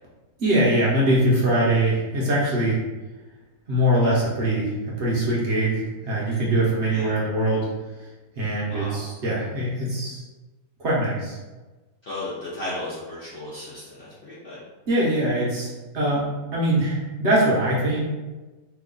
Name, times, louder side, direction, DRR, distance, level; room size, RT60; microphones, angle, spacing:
voice 1, 0.4-2.8 3.7-7.7 8.3-10.2 10.8-11.4 14.9-16.2 16.5-18.0, right 1 dB, 55° right, -6 dB, 1.0 m, -22 dB
voice 2, 8.7-9.0 12.0-14.6, left 1 dB, 50° left, -8 dB, 0.7 m, -35 dB
2.9 x 2.3 x 3.7 m, 1.2 s
omnidirectional pair, 1.6 m